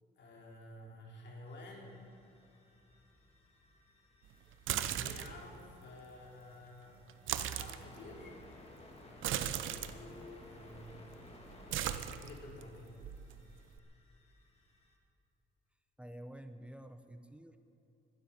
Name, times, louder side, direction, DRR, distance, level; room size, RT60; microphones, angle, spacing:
voice 1, 0.2-2.0 4.9-7.1 7.4-8.4 9.5-11.1 11.7-12.9, left 2 dB, 65° left, -1 dB, 3.7 m, -51 dB
sound 1, 1.5-15.0, left 2 dB, 30° left, 2.3 m, -59 dB
sound 2, 4.5-5.4 7.1-7.8 9.2-9.9 10.7-11.1 11.4-12.6 13.0-13.8, right 11 dB, 80° right, 0.7 m, -37 dB
voice 2, 16.0-17.6, right 1 dB, 5° right, 8 dB, 0.8 m, -50 dB
12.0 x 10.0 x 9.6 m, 3.0 s
cardioid pair, 90°, 20 cm